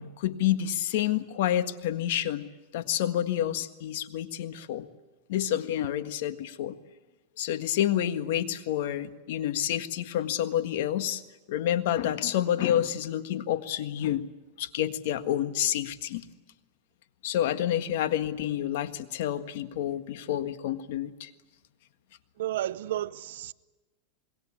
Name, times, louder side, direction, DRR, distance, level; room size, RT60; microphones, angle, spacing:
voice 1, 0.0-2.4 2.7-4.9 5.3-6.8 7.4-11.2 11.5-14.2 14.6-16.2 17.2-21.3, left 11 dB, 70° left, 1.6 m, -29 dB
voice 2, 22.4-23.5, right 13 dB, 80° right, 0.8 m, -32 dB
26.5 x 21.5 x 8.7 m
supercardioid pair, 130°, 0 cm